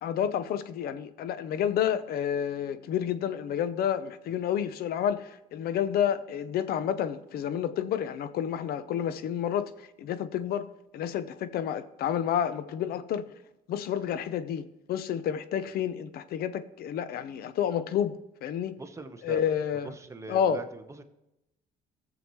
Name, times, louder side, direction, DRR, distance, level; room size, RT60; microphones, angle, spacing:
voice 1, 0.0-9.7 10.0-10.7 10.9-13.2 13.7-18.8 19.2-19.9 20.3-20.6, left 9 dB, 65° left, 0.7 m, -30 dB
voice 2, 18.8-19.4 19.8-21.0, right 3 dB, 15° right, 1.0 m, -42 dB
17.0 x 7.0 x 3.1 m
cardioid pair, 110°, 17 cm